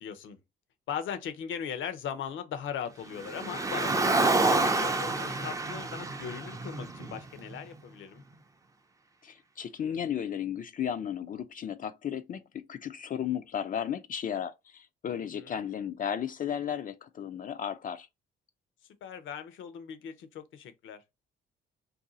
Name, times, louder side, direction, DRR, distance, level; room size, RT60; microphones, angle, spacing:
voice 1, 0.0-0.4 0.9-8.2 15.3-15.7 19.0-21.0, left 8 dB, 75° left, 0.7 m, -39 dB
Car, 3.2-7.6, right 3 dB, 15° right, 0.4 m, -28 dB
voice 2, 9.2-18.1, left 9 dB, 45° left, 0.4 m, -34 dB
2.7 x 2.3 x 3.8 m
cardioid pair, 90°, 20 cm